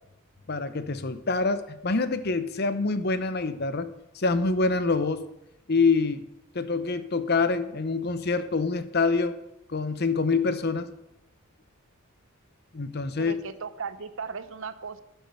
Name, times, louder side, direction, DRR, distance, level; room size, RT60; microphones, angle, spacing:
voice 1, 0.5-3.9 4.1-5.3 5.7-6.2 6.5-9.4 9.7-10.9 12.7-13.3, left 4 dB, 45° left, 12 dB, 0.8 m, -26 dB
voice 2, 13.2-15.0, right 5 dB, 60° right, 13 dB, 0.8 m, -36 dB
11.0 x 8.0 x 6.9 m, 0.85 s
head